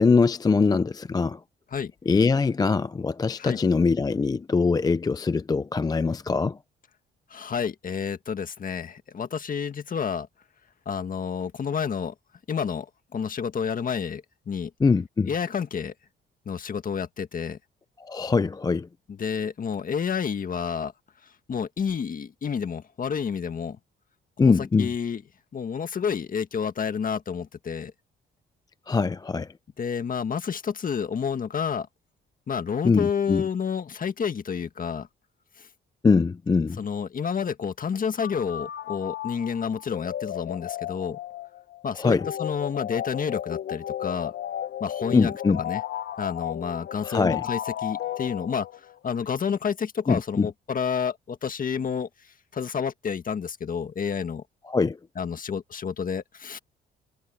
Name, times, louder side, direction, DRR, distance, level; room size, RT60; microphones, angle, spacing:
voice 1, 0.0-1.4 2.1-6.6 14.8-15.3 18.0-18.9 24.4-24.9 28.9-29.5 32.8-33.4 36.0-36.8 41.9-42.3 45.1-45.6 47.0-47.4 50.1-50.5 54.6-55.0, left 4 dB, 20° left, 0.4 m, -22 dB
voice 2, 7.3-10.3 10.9-12.1 12.5-12.9 13.1-14.7 15.3-15.9 16.5-17.6 19.2-20.9 21.5-23.8 24.4-24.5 24.8-25.2 25.5-27.9 29.8-31.9 32.5-35.1 36.8-41.2 41.8-44.3 44.8-45.3 45.6-45.8 46.2-48.7 49.0-52.1 52.5-54.4 55.2-56.6, left 6 dB, 45° left, 1.8 m, -29 dB
sound 1, 38.2-48.9, left 11 dB, 65° left, 0.9 m, -34 dB
cardioid pair, 90°, 20 cm